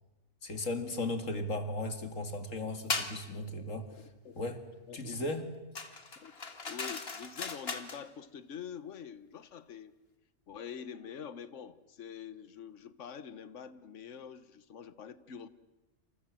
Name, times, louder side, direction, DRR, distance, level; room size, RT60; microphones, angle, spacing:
voice 1, 0.4-3.9 4.3-4.7 4.9-5.5, left 2 dB, 90° left, 8 dB, 2.8 m, -36 dB
sound 1, 2.9-3.2 5.8-8.0, left 3 dB, 50° left, 2.2 m, -37 dB
voice 2, 4.9-5.4 6.2-6.3 6.6-9.9 10.5-15.5, left 7 dB, 70° left, 15 dB, 1.4 m, -46 dB
28.5 x 27.5 x 7.6 m, 1.1 s
omnidirectional pair, 1.3 m